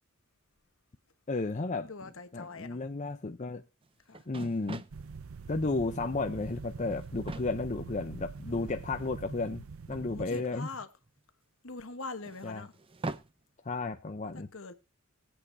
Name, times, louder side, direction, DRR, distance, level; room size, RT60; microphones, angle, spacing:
voice 1, 1.3-1.9 2.3-3.6 4.3-4.8 5.5-10.7 12.4-12.7 13.6-14.5, left 3 dB, 35° left, 0.6 m, -33 dB
voice 2, 1.8-2.8 4.1-4.2 8.5-9.1 10.1-10.9 11.6-12.7 14.2-14.7, left 3 dB, 65° left, 1.2 m, -43 dB
sound 1, 3.8-3.9 4.1-5.0 6.1-6.6 6.9-7.5 8.4-8.5 9.9-11.2 12.2-13.3, right 2 dB, 25° right, 0.5 m, -42 dB
sound 2, 4.9-10.3, right 5 dB, 70° right, 0.5 m, -44 dB
20.0 x 8.1 x 2.7 m
head